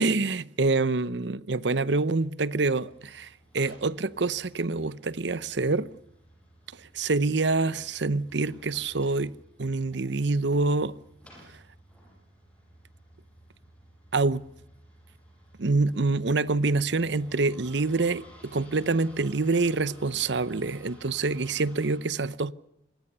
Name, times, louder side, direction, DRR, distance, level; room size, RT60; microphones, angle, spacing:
voice 1, 0.0-5.9 6.9-11.0 14.1-14.4 15.6-22.5, right 3 dB, 70° right, 0.8 m, -26 dB
sound 1, 2.4-22.0, equal, 5° left, 6.9 m, -54 dB
25.5 x 20.0 x 6.8 m
head